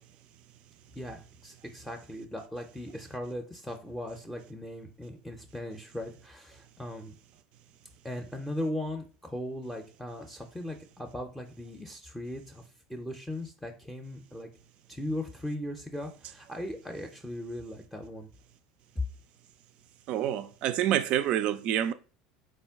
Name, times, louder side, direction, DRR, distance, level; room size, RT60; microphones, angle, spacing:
voice 1, 1.0-7.1 8.0-14.5 14.9-18.3, left 1 dB, 5° left, 0.5 m, -38 dB
voice 2, 20.1-21.9, right 11 dB, 55° right, 0.3 m, -27 dB
3.6 x 2.2 x 3.5 m
hypercardioid pair, 75°, 2 cm